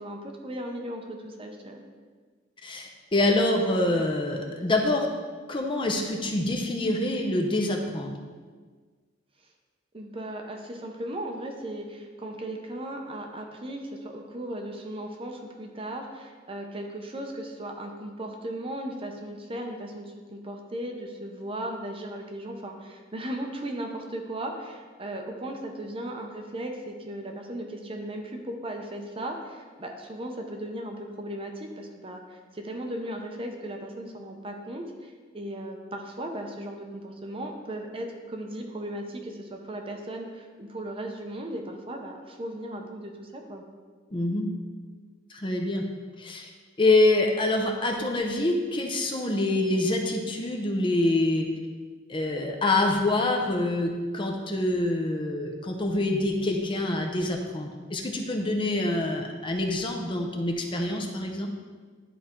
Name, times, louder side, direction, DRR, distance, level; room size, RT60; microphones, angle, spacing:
voice 1, 0.0-1.8 9.9-43.6, right 1 dB, 30° right, 2 dB, 0.7 m, -37 dB
voice 2, 2.6-5.1 5.5-8.2 44.1-44.5 45.3-45.9 46.2-46.5 46.8-51.5 52.1-61.5, left 2 dB, 25° left, 2 dB, 0.6 m, -26 dB
11.0 x 4.2 x 3.7 m, 1.5 s
head